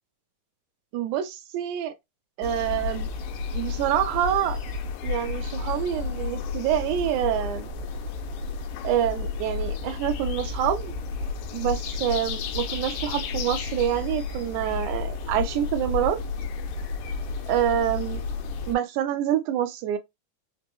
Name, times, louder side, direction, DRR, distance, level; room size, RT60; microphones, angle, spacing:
voice 1, 0.9-1.9 2.4-3.1 3.5-4.6 5.0-7.7 8.8-11.0 11.5-16.2 17.5-18.2 18.7-20.0, right 11 dB, 80° right, 2.0 m, -26 dB
sound 1, 2.4-18.8, left 4 dB, 85° left, 2.1 m, -32 dB
5.2 x 2.0 x 2.9 m
omnidirectional pair, 3.6 m